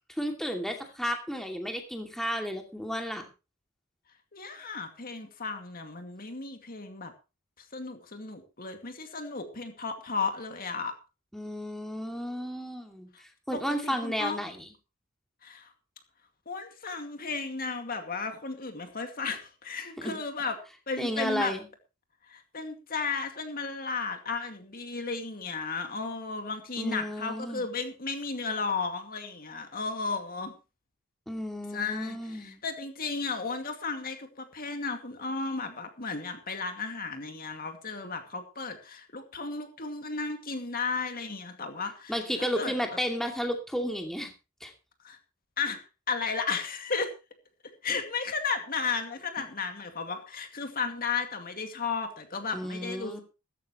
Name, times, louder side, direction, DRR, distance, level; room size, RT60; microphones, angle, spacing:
voice 1, 0.1-3.3 11.3-14.7 20.0-20.2 21.0-21.6 26.8-27.7 31.3-32.6 42.1-44.3 44.6-44.7 49.4-49.5 52.5-53.2, equal, ahead, 3 dB, 2.5 m, -33 dB
voice 2, 4.3-7.1 7.6-10.9 13.7-14.4 15.4-15.7 16.5-20.6 20.9-21.5 22.3-30.5 31.7-42.1 42.5-42.7 45.0-45.2 45.6-45.8 46.1-47.1 47.8-53.2, left 4 dB, 40° left, 6 dB, 2.2 m, -34 dB
15.0 x 14.5 x 3.1 m, 0.30 s
head